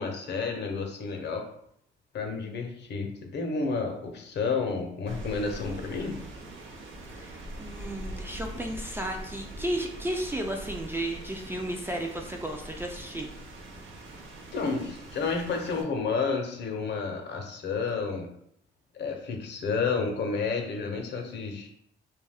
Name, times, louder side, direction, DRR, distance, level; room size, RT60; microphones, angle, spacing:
voice 1, 0.0-1.4 2.1-6.2 14.5-18.3 18.9-21.7, left 4 dB, 60° left, 3 dB, 0.7 m, -30 dB
Rain, 5.1-15.8, right 1 dB, 85° right, 0.6 m, -42 dB
voice 2, 7.1-13.3, right 1 dB, 10° right, 2 dB, 0.3 m, -34 dB
2.4 x 2.2 x 3.4 m, 0.71 s
cardioid pair, 90°, 20 cm